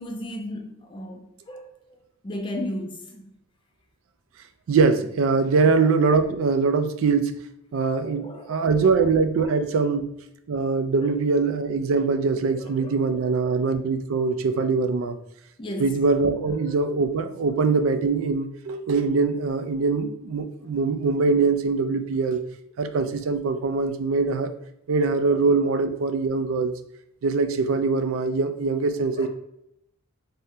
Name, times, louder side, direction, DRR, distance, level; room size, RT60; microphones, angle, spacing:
voice 1, 0.0-2.0 2.2-3.3 5.5-5.7 8.0-8.7 9.4-9.9 11.0-11.1 12.5-13.6 15.6-16.0 16.4-16.9 29.2-29.3, left 1 dB, 25° left, 3 dB, 0.4 m, -36 dB
voice 2, 4.7-7.4 7.7-10.1 10.5-15.2 15.8-22.4 22.8-24.5 24.9-26.7 27.2-29.3, right 4 dB, 75° right, 9 dB, 0.3 m, -23 dB
3.5 x 2.1 x 2.6 m, 0.77 s
head